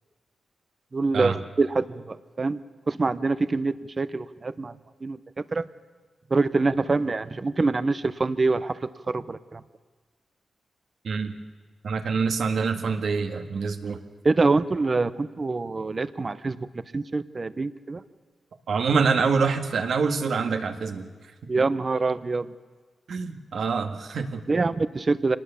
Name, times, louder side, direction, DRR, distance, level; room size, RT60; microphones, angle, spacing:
voice 1, 0.9-2.6 2.9-4.7 5.0-5.6 6.3-8.7 9.1-9.6 14.2-16.6 16.9-18.0 21.5-22.5 24.5-25.4, right 3 dB, 30° right, 15 dB, 0.8 m, -25 dB
voice 2, 11.0-11.4 11.8-14.0 18.7-21.1 21.4-21.6 23.1-24.4, right 5 dB, 70° right, 6 dB, 1.8 m, -26 dB
25.5 x 19.0 x 7.0 m, 1.4 s
wide cardioid pair, 125°, 0 cm